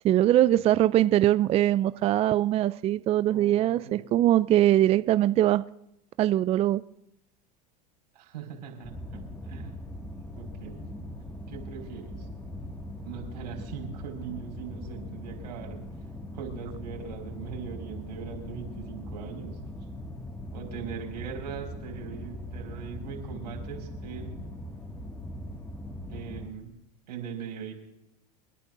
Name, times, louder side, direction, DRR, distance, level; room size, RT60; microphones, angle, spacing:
voice 1, 0.0-5.6 6.2-6.8, right 13 dB, 30° right, 15 dB, 0.4 m, -22 dB
voice 2, 3.3-4.0 8.1-9.7 10.4-10.9 11.5-12.2 13.0-15.8 16.3-19.6 20.5-24.4 26.1-26.7 27.1-27.7, right 7 dB, 90° right, 2 dB, 5.2 m, -40 dB
sound 1, 8.8-26.5, left 1 dB, 10° left, 2.0 m, -40 dB
29.0 x 11.0 x 2.6 m, 0.83 s
supercardioid pair, 110°, 21 cm